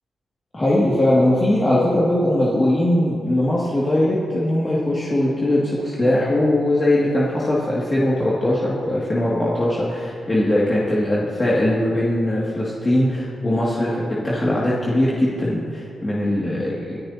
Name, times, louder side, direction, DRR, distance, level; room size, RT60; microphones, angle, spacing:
voice 1, 0.5-17.0, left 1 dB, 30° left, -7 dB, 2.5 m, -20 dB
24.5 x 10.5 x 2.9 m, 2.4 s
cardioid pair, 70°, 0 cm